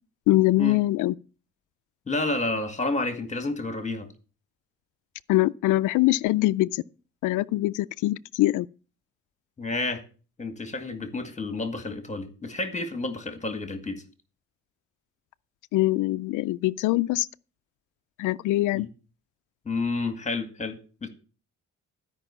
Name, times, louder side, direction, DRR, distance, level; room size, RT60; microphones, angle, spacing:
voice 1, 0.3-1.1 5.3-6.8 7.2-8.7 15.7-17.3 18.2-18.9, left 17 dB, 85° left, 0.5 m, -23 dB
voice 2, 2.1-4.1 9.6-10.0 10.4-14.0 18.7-18.9 19.7-21.1, left 2 dB, 25° left, 2.1 m, -30 dB
13.0 x 5.4 x 7.1 m
cardioid pair, 90°, 30 cm